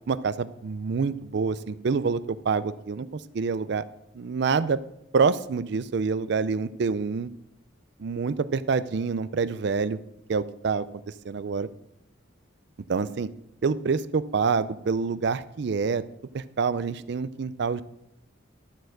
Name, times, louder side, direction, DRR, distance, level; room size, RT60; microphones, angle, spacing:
voice 1, 0.1-3.8 4.1-4.8 5.1-7.3 8.0-10.0 10.3-10.8 11.2-11.7 12.9-13.3 13.6-16.0 16.3-17.8, right 5 dB, 55° right, 15 dB, 0.4 m, -26 dB
12.0 x 4.3 x 7.7 m, 0.81 s
head